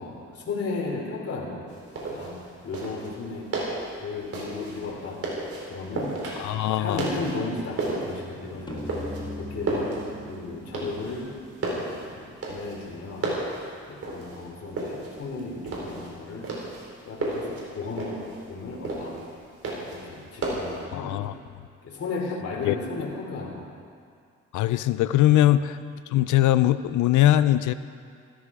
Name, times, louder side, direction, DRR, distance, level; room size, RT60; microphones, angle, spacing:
voice 1, 0.0-1.7 2.0-2.4 2.6-3.5 4.0-5.2 5.7-6.1 6.8-9.9 10.3-11.3 11.8-13.4 13.9-16.5 17.0-19.1 19.8-21.3 21.8-23.8, left 3 dB, 50° left, -2 dB, 3.1 m, -35 dB
sound 1, 1.7-20.8, right 2 dB, 50° right, 4.1 m, -34 dB
voice 2, 6.4-7.1 20.9-21.3 22.6-22.7 24.5-25.8 26.1-27.7, left 13 dB, 75° left, 14 dB, 0.6 m, -21 dB
sound 2, 8.7-12.2, left 2 dB, 15° left, 1.5 m, -40 dB
14.5 x 13.0 x 4.8 m, 2.3 s
cardioid pair, 90°, 30 cm